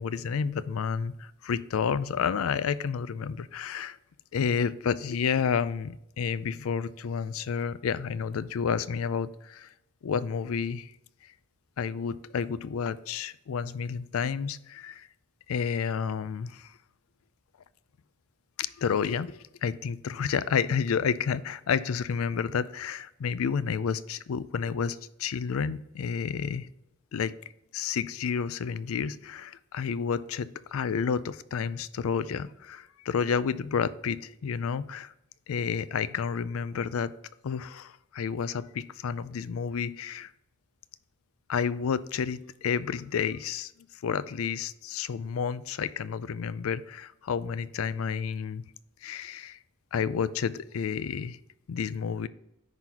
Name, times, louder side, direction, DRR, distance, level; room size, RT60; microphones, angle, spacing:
voice 1, 0.0-4.0 4.3-9.7 10.0-10.9 11.8-15.1 15.5-16.7 18.6-26.7 27.1-27.3 27.7-35.1 35.5-37.1 37.4-40.3 41.5-48.6 49.0-49.6 49.9-51.4 51.7-52.3, left 6 dB, 85° left, 17 dB, 0.4 m, -30 dB
10.5 x 3.9 x 2.9 m, 0.83 s
head